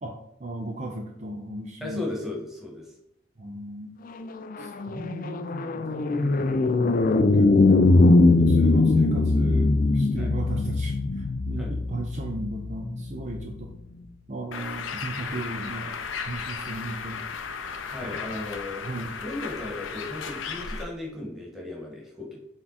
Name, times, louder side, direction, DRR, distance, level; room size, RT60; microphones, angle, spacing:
voice 1, 0.0-2.0 3.4-4.0 4.6-7.8 8.4-13.7 14.3-17.2 18.0-18.4 18.8-19.1, right 2 dB, 40° right, 2 dB, 0.6 m, -36 dB
voice 2, 1.8-2.9 10.2-10.3 11.6-11.7 17.9-18.8 19.2-22.4, left 2 dB, ahead, -2 dB, 1.6 m, -36 dB
sound 1, 4.2-13.7, left 2 dB, 45° left, 0.4 m, -21 dB
Bird, 14.5-20.8, left 5 dB, 90° left, 0.7 m, -35 dB
7.0 x 3.6 x 4.1 m, 0.79 s
head